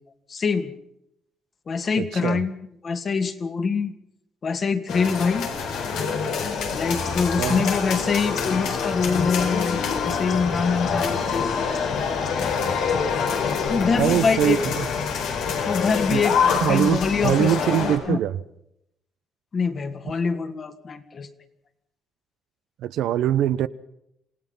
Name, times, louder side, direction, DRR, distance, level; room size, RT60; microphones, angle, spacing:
voice 1, 0.3-0.7 1.7-2.5 2.8-3.9 4.4-5.5 6.7-12.1 13.6-14.6 15.7-17.7 18.1-18.2 19.5-21.3, left 5 dB, 45° left, 2.3 m, -25 dB
voice 2, 2.0-2.4 7.4-7.7 14.0-14.9 16.1-16.2 16.6-18.4 22.8-23.7, right 11 dB, 80° right, 0.9 m, -23 dB
sound 1, 4.9-18.0, left 6 dB, 85° left, 4.3 m, -26 dB
sound 2, 6.5-17.3, left 5 dB, 65° left, 5.4 m, -41 dB
27.5 x 17.5 x 5.6 m
cardioid pair, 95°, 0 cm